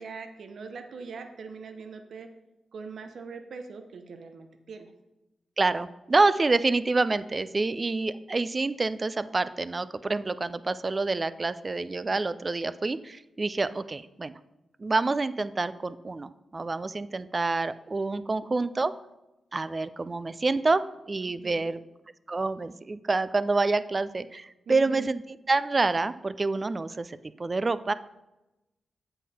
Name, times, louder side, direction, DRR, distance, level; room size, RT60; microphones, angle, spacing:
voice 1, 0.0-2.3 2.7-4.9 21.3-21.7 24.7-25.1, right 5 dB, 70° right, 7 dB, 0.7 m, -42 dB
voice 2, 5.6-14.4 14.8-18.9 19.5-21.8 22.3-25.2 25.5-27.9, right 3 dB, 35° right, 14 dB, 0.4 m, -27 dB
8.2 x 5.6 x 4.2 m, 0.98 s
cardioid pair, 60°, 0 cm